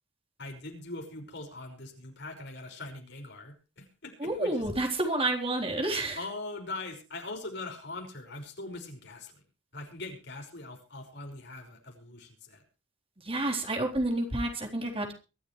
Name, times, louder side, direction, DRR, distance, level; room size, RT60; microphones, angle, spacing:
voice 1, 0.4-4.5 6.2-9.4 9.7-12.6, left 2 dB, 65° left, 4 dB, 5.6 m, -41 dB
voice 2, 4.2-6.2 13.2-15.1, right 2 dB, 30° right, 1 dB, 3.9 m, -29 dB
23.5 x 12.5 x 3.2 m, 0.33 s
head